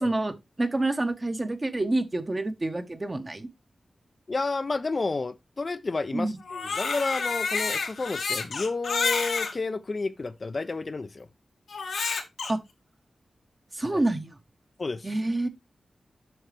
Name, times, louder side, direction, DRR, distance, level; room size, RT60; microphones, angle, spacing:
voice 1, 0.0-3.5 6.1-6.4 12.5-12.6 13.7-14.3 15.0-15.5, right 2 dB, 30° right, 1.3 m, -27 dB
voice 2, 4.3-11.3 13.8-14.0 14.8-15.1, left 3 dB, 45° left, 0.7 m, -31 dB
Crying sobbing, 6.4-9.5 10.3-10.4 11.7-12.5, left 4 dB, 90° left, 1.8 m, -29 dB
7.8 x 6.4 x 3.4 m
wide cardioid pair, 85°, 0 cm